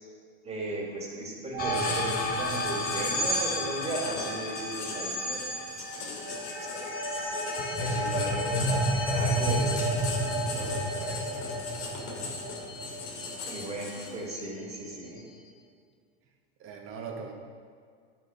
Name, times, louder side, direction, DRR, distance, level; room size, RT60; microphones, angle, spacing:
voice 1, 0.4-7.0 7.8-9.9 13.4-15.2, right 2 dB, 20° right, -2 dB, 2.7 m, -36 dB
sound 1, 1.5-11.3 11.5-11.6, right 3 dB, 80° right, 2.1 m, -40 dB
sound 2, 1.6-14.0, equal, 30° left, 1.5 m, -31 dB
Writing, 1.7-14.3, left 4 dB, 65° left, 2.7 m, -39 dB
voice 2, 10.5-11.5 13.4-13.6 16.6-17.3, right 5 dB, 45° right, 1 dB, 1.7 m, -41 dB
10.5 x 7.1 x 5.9 m, 2.2 s
supercardioid pair, 120°, 30 cm